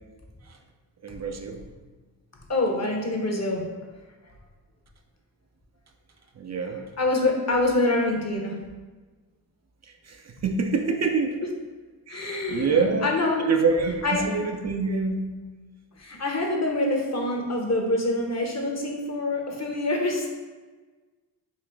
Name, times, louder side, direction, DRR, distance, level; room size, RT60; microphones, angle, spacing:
voice 1, 1.0-1.6 6.4-6.9 9.8-11.4 12.1-13.1 13.4-15.4, right 4 dB, 35° right, 4 dB, 0.5 m, -26 dB
voice 2, 2.5-3.6 7.0-8.6 12.1-13.5 14.0-14.3 16.0-20.3, left 2 dB, 35° left, 1 dB, 0.9 m, -25 dB
3.8 x 2.4 x 3.5 m, 1.3 s
supercardioid pair, 45°, 45 cm